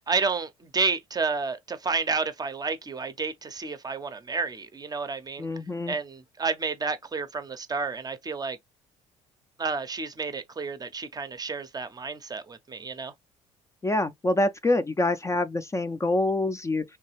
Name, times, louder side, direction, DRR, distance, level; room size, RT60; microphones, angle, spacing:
voice 1, 0.0-5.5 5.9-8.6 9.6-13.1, right 4 dB, 25° right, 0.6 m, -30 dB
voice 2, 5.4-5.9 13.8-16.8, left 2 dB, 20° left, 0.4 m, -26 dB
3.2 x 2.3 x 2.9 m
hypercardioid pair, 50°, 16 cm